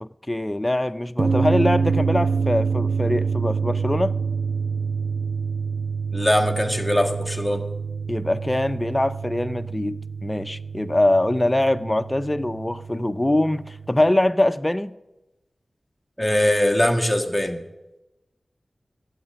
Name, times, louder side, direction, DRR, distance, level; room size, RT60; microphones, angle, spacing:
voice 1, 0.0-4.2 8.1-14.9, left 1 dB, 20° left, 0.6 m, -23 dB
sound 1, 1.2-14.1, right 5 dB, 55° right, 0.4 m, -27 dB
voice 2, 6.1-7.7 16.2-17.6, left 1 dB, ahead, 1.7 m, -21 dB
13.0 x 8.1 x 8.9 m
wide cardioid pair, 55°, 0 cm